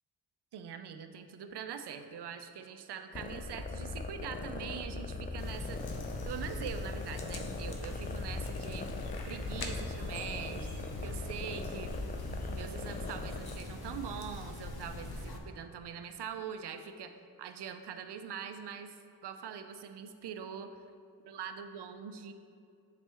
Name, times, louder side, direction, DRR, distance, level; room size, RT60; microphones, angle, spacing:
voice 1, 0.5-5.8 6.2-8.9 9.3-11.9 12.5-17.1 17.4-18.9 19.2-20.7 21.3-22.3, right 7 dB, 75° right, 8 dB, 0.5 m, -43 dB
sound 1, 3.1-13.6, left 3 dB, 20° left, 0.4 m, -40 dB
sound 2, 5.4-15.4, left 2 dB, 65° left, 0.7 m, -43 dB
sound 3, 8.9-15.2, equal, 45° left, 1.3 m, -52 dB
7.2 x 4.2 x 3.4 m, 2.4 s
cardioid pair, 70°, 40 cm